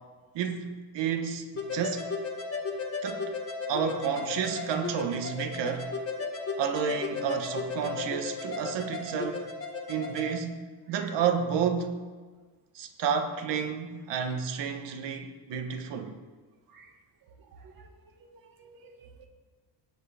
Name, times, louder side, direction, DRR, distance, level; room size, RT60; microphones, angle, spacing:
voice 1, 0.3-1.5 1.7-2.1 3.0-3.3 3.7-5.9 6.6-9.5 9.9-12.0 12.7-16.2, right 7 dB, 85° right, 1.3 m, -31 dB
sound 1, 1.6-10.3, left 4 dB, 35° left, 1.6 m, -35 dB
voice 2, 17.4-17.9 18.2-18.3 18.6-19.3, right 4 dB, 55° right, 1.8 m, -53 dB
18.5 x 8.1 x 3.5 m
cardioid pair, 140°, 42 cm